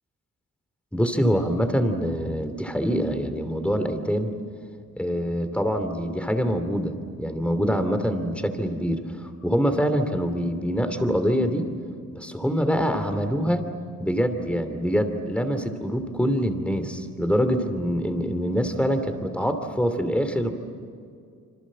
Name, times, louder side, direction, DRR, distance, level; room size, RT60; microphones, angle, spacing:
voice 1, 0.9-4.3 5.0-11.7 12.1-13.7 14.0-20.5, equal, 5° left, 8 dB, 2.8 m, -25 dB
26.5 x 26.5 x 7.5 m, 2.3 s
cardioid pair, 95°, 30 cm